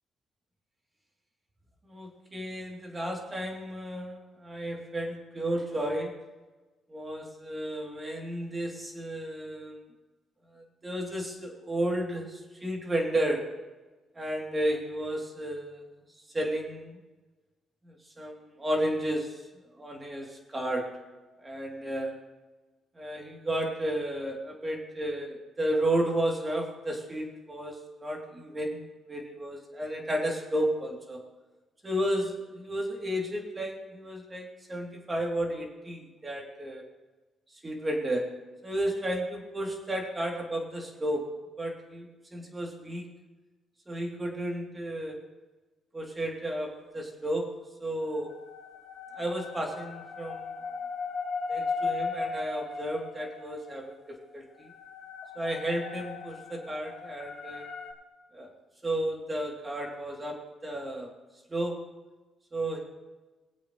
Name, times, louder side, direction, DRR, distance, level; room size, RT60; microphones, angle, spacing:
voice 1, 1.9-6.1 6.9-9.8 10.5-13.4 14.1-15.8 16.3-17.0 17.9-19.4 19.8-20.9 21.4-22.2 23.0-31.2 31.8-36.8 37.6-38.2 38.6-41.2 41.6-42.1 42.3-43.1 43.9-45.2 45.9-47.5 47.8-48.3 49.1-50.5 51.5-54.7 55.3-57.7 58.3-58.5 58.8-61.1 61.5-61.8 62.5-62.8, right 1 dB, 20° right, 0 dB, 3.1 m, -32 dB
sound 1, 48.0-53.7 54.6-57.9, left 4 dB, 60° left, 2.7 m, -37 dB
21.0 x 8.4 x 3.2 m, 1.2 s
cardioid pair, 90°, 0 cm